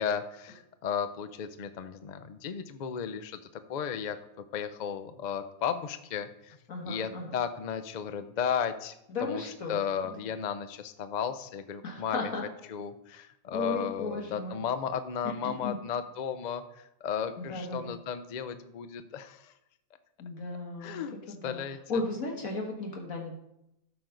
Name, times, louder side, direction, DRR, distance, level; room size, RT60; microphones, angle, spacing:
voice 1, 0.0-3.4 3.7-4.2 4.5-6.6 6.8-8.9 9.2-9.4 9.7-12.3 12.7-19.5 20.8-21.2 21.4-21.8, left 7 dB, 50° left, 11 dB, 0.5 m, -34 dB
voice 2, 6.7-7.4 9.1-9.8 10.0-10.2 11.8-12.4 13.5-14.6 15.4-15.8 17.4-18.0 20.2-23.3, left 2 dB, 70° left, 0 dB, 1.9 m, -36 dB
13.0 x 6.0 x 3.9 m, 0.83 s
omnidirectional pair, 1.5 m